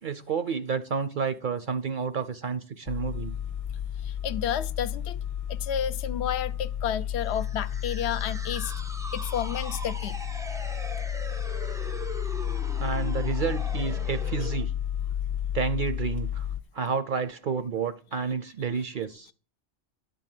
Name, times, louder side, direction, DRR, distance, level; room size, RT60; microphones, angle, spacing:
voice 1, 0.0-3.3 12.8-14.7 15.5-16.5 16.7-19.3, right 6 dB, 55° right, 0.6 m, -30 dB
sound 1, 2.9-16.6, left 10 dB, 35° left, 0.7 m, -32 dB
voice 2, 4.0-5.2 5.5-8.7 9.1-10.2, left 9 dB, 70° left, 0.8 m, -31 dB
sound 2, 7.2-14.7, equal, 5° right, 0.3 m, -41 dB
11.5 x 3.8 x 7.5 m
omnidirectional pair, 1.2 m